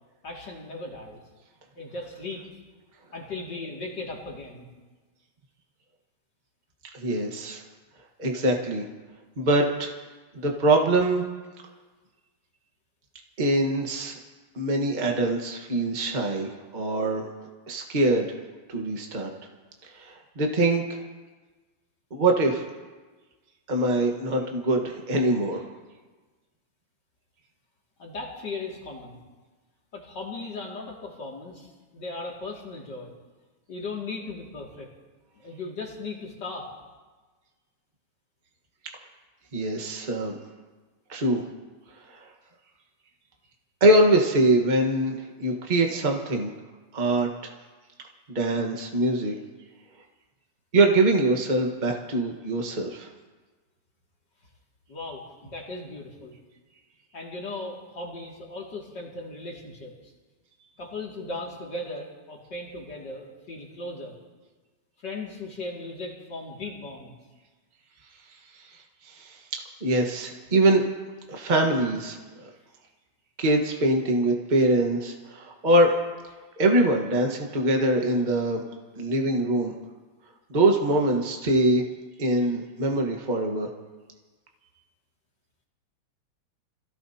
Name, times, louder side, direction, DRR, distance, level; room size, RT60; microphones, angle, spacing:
voice 1, 0.2-1.2 1.8-2.4 3.1-4.7 28.0-29.2 29.9-33.1 33.7-34.9 35.4-36.7 54.9-56.4 57.1-60.1 60.8-64.2 65.0-67.1 71.3-71.4, left 2 dB, 40° left, -2 dB, 2.8 m, -37 dB
voice 2, 6.9-7.6 8.2-8.8 9.4-9.9 10.3-11.2 13.4-14.2 14.5-17.2 17.7-18.3 18.7-19.3 19.9-21.0 22.1-22.7 23.7-25.6 39.5-40.4 41.1-41.4 42.1-42.2 43.8-46.5 46.9-47.5 48.3-49.3 50.7-53.1 69.1-69.4 69.8-70.8 71.3-72.4 73.4-75.9 76.6-78.6 79.0-79.7 80.5-81.8 82.2-83.7, right 1 dB, 40° right, 1 dB, 0.6 m, -23 dB
27.0 x 17.0 x 2.9 m, 1.3 s
omnidirectional pair, 3.3 m